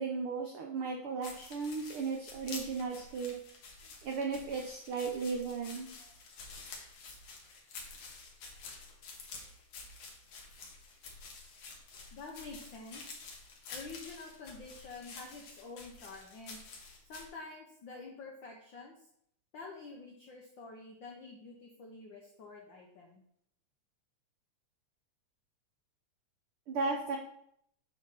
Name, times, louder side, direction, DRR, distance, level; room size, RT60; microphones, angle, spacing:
voice 1, 0.0-3.3 4.0-5.9 26.7-27.2, right 4 dB, 85° right, 1 dB, 1.2 m, -35 dB
sound 1, 1.2-17.3, left 4 dB, 65° left, 2.2 m, -49 dB
voice 2, 12.1-13.1 13.7-16.6 17.1-19.1 19.5-23.2, left 3 dB, 85° left, 0 dB, 1.0 m, -48 dB
7.7 x 3.7 x 5.6 m, 0.69 s
omnidirectional pair, 3.4 m